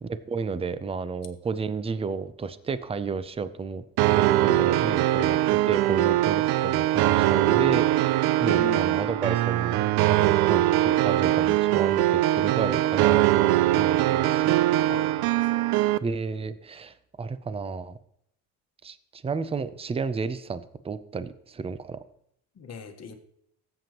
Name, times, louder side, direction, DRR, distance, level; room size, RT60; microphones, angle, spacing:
voice 1, 0.0-3.8 4.1-5.4 5.7-14.5 16.0-18.0 18.8-22.0, right 5 dB, 15° right, 14 dB, 0.5 m, -32 dB
sound 1, 4.0-16.0, right 14 dB, 85° right, 0.5 m, -22 dB
voice 2, 8.5-9.0 14.9-15.1 15.4-15.8 22.6-23.1, left 6 dB, 45° left, 5 dB, 1.4 m, -38 dB
16.0 x 7.9 x 3.0 m, 0.73 s
cardioid pair, 110°, 38 cm